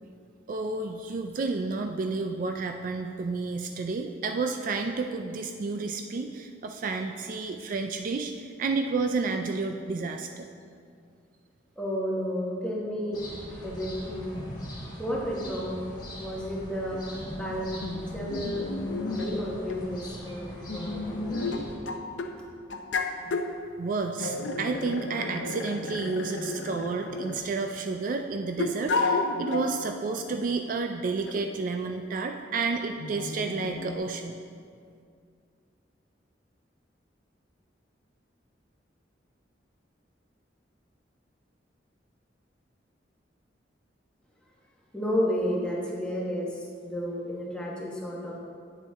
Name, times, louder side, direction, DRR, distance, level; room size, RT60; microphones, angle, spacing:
voice 1, 0.5-10.5 23.8-34.4, right 4 dB, 45° right, 5 dB, 0.3 m, -31 dB
voice 2, 11.8-13.2 13.6-14.3 15.0-15.8 16.2-17.0 17.3-17.7 18.1-18.6 19.1-20.5 20.7-21.9 44.9-46.5 46.8-48.4, equal, 5° left, -4 dB, 1.2 m, -31 dB
sound 1, 13.1-21.8, equal, 25° left, 1.6 m, -41 dB
sound 2, 16.9-17.0 17.8-19.3 19.7-19.8 20.7-22.3 22.7-23.5 24.2-27.7 28.6-29.7 30.3-30.4 31.3-31.5 33.0-34.0, left 3 dB, 85° left, 0.6 m, -32 dB
8.8 x 7.1 x 3.5 m, 2.3 s
head